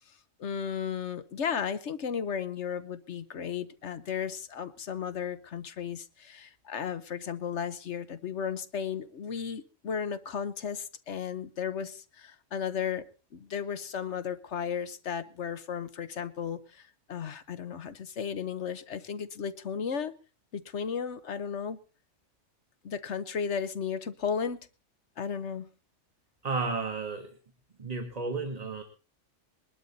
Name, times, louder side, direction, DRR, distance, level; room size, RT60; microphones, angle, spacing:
voice 1, 0.4-13.1 13.3-20.1 20.5-21.8 22.8-24.7 25.2-25.7, left 7 dB, 70° left, 13 dB, 1.2 m, -34 dB
voice 2, 26.4-27.4 27.8-28.8, right 3 dB, 35° right, 5 dB, 1.7 m, -32 dB
21.5 x 12.0 x 4.1 m, 0.35 s
omnidirectional pair, 1.2 m